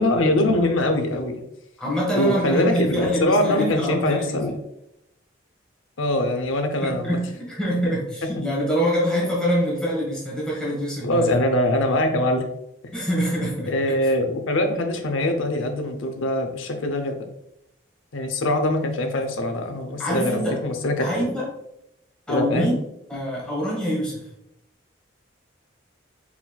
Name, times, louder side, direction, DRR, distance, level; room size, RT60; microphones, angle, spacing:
voice 1, 0.0-1.4 2.1-4.6 6.0-7.2 11.0-12.5 13.7-17.2 18.1-21.1 22.3-22.7, left 1 dB, 85° left, 6 dB, 0.6 m, -23 dB
voice 2, 1.8-4.5 6.8-11.3 12.9-13.7 20.0-20.6 21.0-21.5 22.3-22.7 23.1-24.2, equal, 5° left, -5 dB, 1.4 m, -25 dB
4.3 x 3.9 x 2.2 m, 0.82 s
head